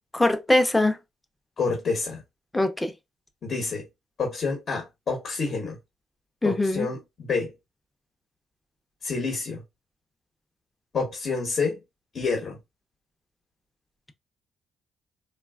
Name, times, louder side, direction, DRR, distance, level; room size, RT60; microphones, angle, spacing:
voice 1, 0.1-1.0 2.5-2.9 6.4-6.9, left 2 dB, 10° left, 0.5 m, -22 dB
voice 2, 1.6-2.2 3.4-3.9 4.2-5.8 6.4-7.5 9.0-9.6 10.9-11.8 12.1-12.6, left 4 dB, 50° left, 0.9 m, -28 dB
3.2 x 2.2 x 2.3 m
cardioid pair, 90°, 0 cm